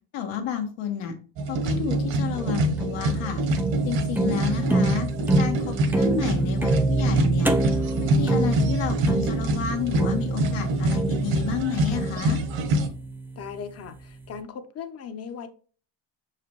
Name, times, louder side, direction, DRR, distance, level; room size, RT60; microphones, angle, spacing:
voice 1, 0.1-1.1 1.5-3.4 3.8-5.1 5.4-7.6 8.0-12.4, left 8 dB, 85° left, 4 dB, 1.6 m, -31 dB
sound 1, 1.4-12.9, right 1 dB, 75° right, 1.5 m, -26 dB
sound 2, 2.3-13.5, right 2 dB, 5° right, 0.3 m, -27 dB
voice 2, 13.4-15.5, left 6 dB, 35° left, 10 dB, 0.8 m, -38 dB
6.5 x 4.9 x 3.0 m, 0.39 s
cardioid pair, 155°, 44 cm